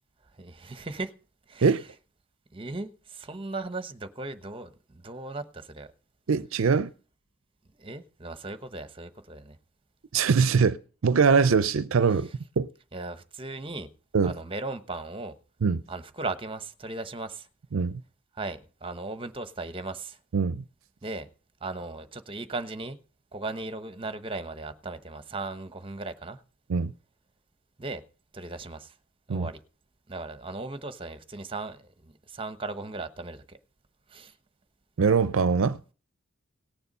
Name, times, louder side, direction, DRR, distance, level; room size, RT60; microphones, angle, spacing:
voice 1, 0.3-1.1 1.5-1.8 2.5-5.9 7.7-9.6 10.6-10.7 12.9-13.9 14.2-15.3 15.9-17.5 18.3-20.2 21.0-21.3 21.6-23.0 23.3-26.4 27.8-28.0 28.3-28.9 29.3-29.6 30.1-33.6 34.1-34.3, right 2 dB, 25° right, 1.0 m, -37 dB
voice 2, 6.3-6.9 10.1-10.8 11.0-12.3 12.6-12.7 14.1-14.3 15.6-15.8 17.7-18.0 20.3-20.6 26.7-26.9 29.3-29.5 35.0-35.8, right 5 dB, 65° right, 0.5 m, -22 dB
18.0 x 6.9 x 5.4 m
head